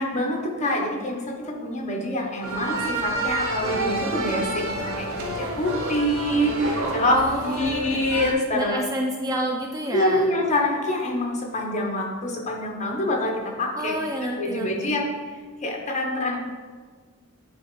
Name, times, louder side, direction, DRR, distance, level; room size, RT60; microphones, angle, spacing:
voice 1, 0.0-8.8 9.9-14.0 14.4-15.1 15.6-16.4, left 1 dB, 30° left, 1 dB, 0.9 m, -25 dB
sound 1, 2.4-8.3, right 2 dB, 65° right, 0.8 m, -29 dB
voice 2, 7.1-7.9 8.5-10.3 13.7-15.0, right 1 dB, 15° right, 1 dB, 0.4 m, -29 dB
9.1 x 4.0 x 3.1 m, 1.5 s
head